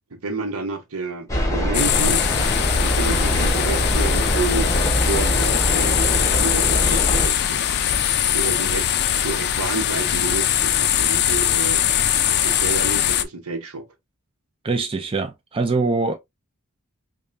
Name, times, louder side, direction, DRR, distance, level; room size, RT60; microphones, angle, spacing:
voice 1, 0.1-2.3 2.8-4.7 5.0-7.6 8.3-11.8 12.4-13.8, right 3 dB, 70° right, 1.0 m, -29 dB
sound 1, 1.3-7.3, equal, 15° left, 0.9 m, -22 dB
sound 2, 1.7-13.2, left 10 dB, 50° left, 0.4 m, -21 dB
voice 2, 14.6-16.1, right 3 dB, 25° right, 0.4 m, -23 dB
5.2 x 2.2 x 2.6 m
head